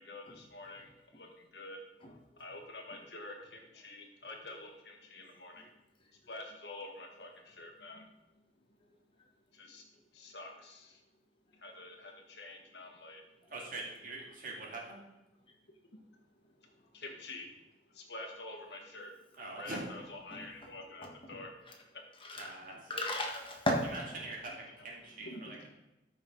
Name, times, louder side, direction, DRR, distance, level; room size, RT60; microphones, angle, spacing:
voice 1, 0.0-1.8 2.4-5.7 6.3-8.1 9.5-9.8 10.1-11.0 11.6-13.2 16.9-17.5 17.9-19.1 19.6-21.5 25.2-25.7, left 2 dB, 70° left, 2 dB, 1.7 m, -47 dB
voice 2, 2.0-2.4 2.9-3.1 4.5-4.6 5.5-5.7 6.2-6.3 13.4-13.5 14.0-14.1 20.0-20.7 21.0-21.8 22.1-23.9 24.1-24.3, left 1 dB, 30° left, 1 dB, 1.6 m, -39 dB
voice 3, 13.5-15.1 19.3-19.8 22.3-22.7 23.9-25.7, right 2 dB, 50° right, -1 dB, 2.3 m, -43 dB
13.0 x 5.7 x 3.9 m, 0.98 s
head